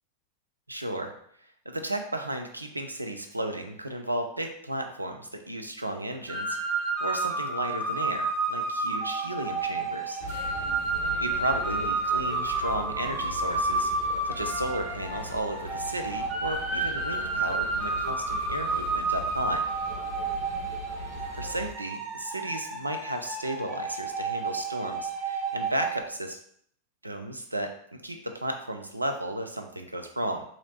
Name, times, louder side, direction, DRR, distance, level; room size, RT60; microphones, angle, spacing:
voice 1, 0.7-1.1 1.7-10.2 11.2-13.9 14.2-19.6 21.3-26.4 27.0-27.7 28.0-30.4, right 1 dB, 85° right, 5 dB, 0.4 m, -34 dB
sound 1, 6.3-26.0, right 3 dB, 25° right, 0.7 m, -31 dB
sound 2, 10.2-21.7, left 2 dB, 55° left, 0.6 m, -41 dB
2.9 x 2.5 x 3.1 m, 0.65 s
figure-of-eight pair, 90°, 0 cm